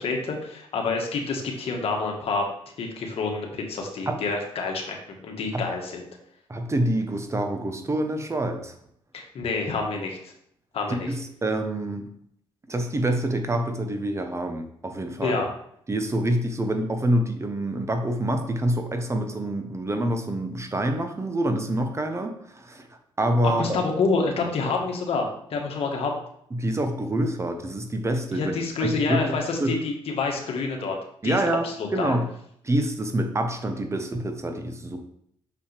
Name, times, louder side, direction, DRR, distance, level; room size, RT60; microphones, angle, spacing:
voice 1, 0.0-2.4 2.8-5.0 5.2-6.1 9.1-10.3 10.7-11.1 15.2-15.5 23.4-26.1 28.3-31.0 31.2-32.2, left 4 dB, 65° left, 2 dB, 1.5 m, -28 dB
voice 2, 6.5-8.7 10.9-12.1 12.7-15.4 15.9-22.9 23.2-23.8 26.5-28.5 28.8-29.7 31.2-32.2 32.6-35.0, right 1 dB, 25° right, 6 dB, 1.0 m, -26 dB
6.3 x 5.7 x 3.4 m, 0.70 s
supercardioid pair, 70°, 11 cm